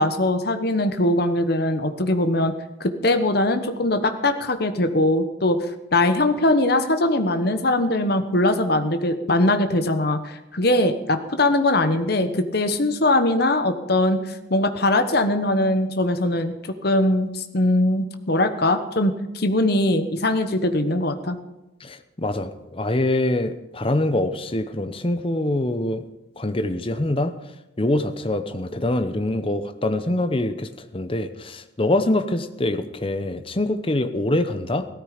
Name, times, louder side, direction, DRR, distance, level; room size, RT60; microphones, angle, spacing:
voice 1, 0.0-2.5 2.8-5.7 5.9-21.4, left 1 dB, 55° left, 8 dB, 1.0 m, -21 dB
voice 2, 21.8-26.0 26.4-27.3 27.8-34.9, left 1 dB, 30° left, 9 dB, 0.8 m, -24 dB
16.0 x 13.5 x 5.1 m, 0.95 s
head